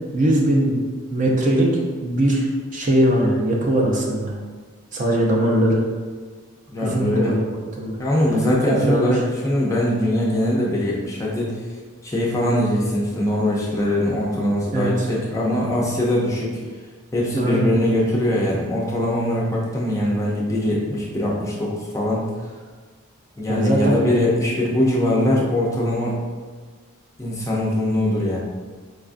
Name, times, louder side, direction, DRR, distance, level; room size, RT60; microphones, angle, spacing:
voice 1, 0.1-0.8 1.1-1.7 2.0-4.3 4.9-5.8 6.8-8.0 8.3-9.0 14.7-14.9 17.3-17.6 23.5-24.0, right 1 dB, 35° right, -2 dB, 0.5 m, -20 dB
voice 2, 6.7-7.3 8.0-11.6 12.0-16.6 17.1-22.3 23.4-26.2 27.2-28.4, left 1 dB, 15° left, -5 dB, 0.4 m, -22 dB
4.6 x 2.3 x 2.5 m, 1.5 s
head